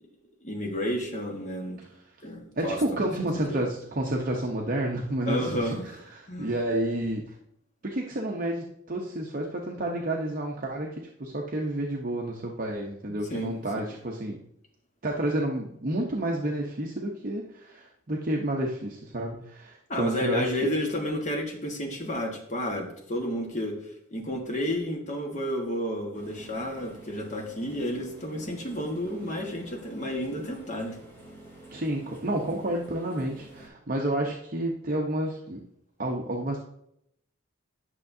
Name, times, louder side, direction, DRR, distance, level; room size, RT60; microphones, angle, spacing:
voice 1, 0.4-1.8 2.2-3.1 3.5-3.6 5.3-6.0 6.3-6.5 13.3-13.5 13.8-13.9 19.9-31.0, equal, 35° left, 1 dB, 1.4 m, -31 dB
voice 2, 2.6-7.3 7.8-14.4 15.0-20.7 31.7-35.6 36.0-36.6, right 1 dB, 45° right, -1 dB, 0.8 m, -30 dB
sound 1, 26.1-33.7, right 1 dB, 10° left, 2.6 m, -48 dB
11.0 x 6.5 x 2.7 m, 0.74 s
head